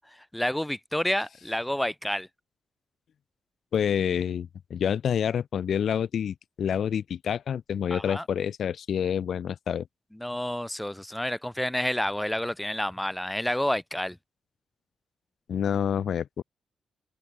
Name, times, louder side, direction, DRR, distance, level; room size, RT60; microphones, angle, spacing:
voice 1, 0.3-2.3 7.9-8.2 10.1-14.2, left 1 dB, 5° left, 1.0 m, -29 dB
voice 2, 3.7-9.8 15.5-16.4, left 8 dB, 60° left, 0.5 m, -28 dB
open air
wide cardioid pair, 145°, 0 cm